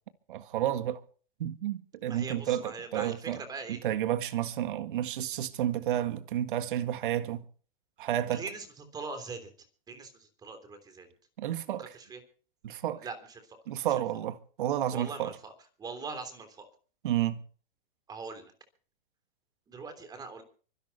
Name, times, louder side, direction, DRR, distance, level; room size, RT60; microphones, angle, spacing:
voice 1, 0.3-1.0 1.4-3.4 3.7-7.4 8.0-8.4 11.4-11.9 12.6-13.1 13.7-15.3 17.0-17.4, right 11 dB, 60° right, 1.8 m, -31 dB
voice 2, 2.1-3.8 8.3-9.5 9.9-11.1 11.8-12.2 12.9-13.2 13.5-13.6 14.9-15.5 15.8-16.7 18.1-18.5 19.7-20.4, right 4 dB, 15° right, 3.4 m, -41 dB
24.5 x 11.5 x 4.3 m
hypercardioid pair, 150°, 29 cm